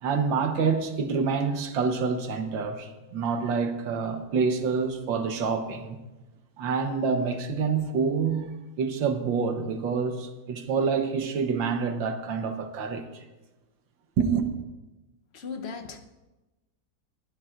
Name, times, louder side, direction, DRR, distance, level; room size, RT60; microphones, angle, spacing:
voice 1, 0.0-6.0 6.6-8.5 8.8-13.2 14.2-14.5, right 5 dB, 80° right, 1.7 m, -27 dB
voice 2, 15.3-16.0, left 5 dB, 45° left, 0.9 m, -36 dB
21.5 x 12.0 x 2.5 m
omnidirectional pair, 2.0 m